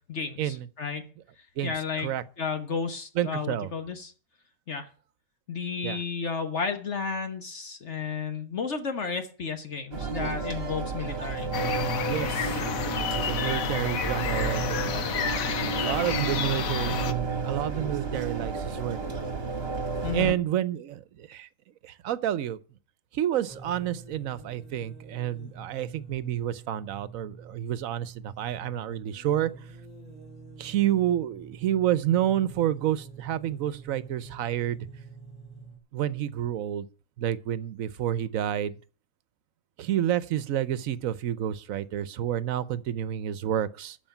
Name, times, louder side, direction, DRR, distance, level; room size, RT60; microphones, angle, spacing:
voice 1, 0.1-1.1 1.6-2.1 2.4-4.1 4.7-4.9 5.5-11.5 20.0-20.4, left 5 dB, 60° left, 1.4 m, -32 dB
voice 2, 3.2-3.7 5.8-6.0 12.0-12.6 13.1-14.8 15.8-19.0 20.1-21.5 21.8-22.6 23.1-29.5 30.6-34.8 35.9-36.9 37.2-38.8 39.8-44.0, right 11 dB, 80° right, 1.1 m, -29 dB
sound 1, 9.9-20.3, right 4 dB, 45° right, 2.0 m, -32 dB
sound 2, 11.5-17.1, left 8 dB, 80° left, 1.4 m, -30 dB
sound 3, 23.5-35.8, right 4 dB, 5° right, 3.5 m, -47 dB
13.0 x 5.0 x 8.9 m
omnidirectional pair, 1.4 m